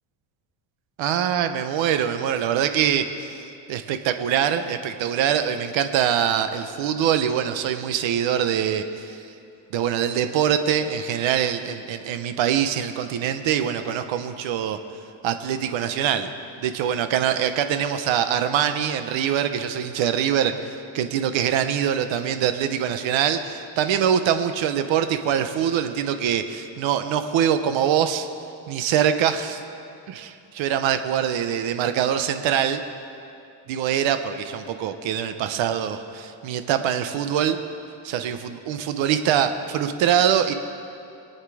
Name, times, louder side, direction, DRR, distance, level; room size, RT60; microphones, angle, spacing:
voice 1, 1.0-3.4 3.7-9.2 9.7-14.8 15.2-16.3 16.6-28.3 28.7-29.6 30.1-32.8 33.7-37.6 38.0-40.5, right 9 dB, 75° right, 8 dB, 0.9 m, -23 dB
23.0 x 9.2 x 4.9 m, 2.6 s
cardioid pair, 135°, 46 cm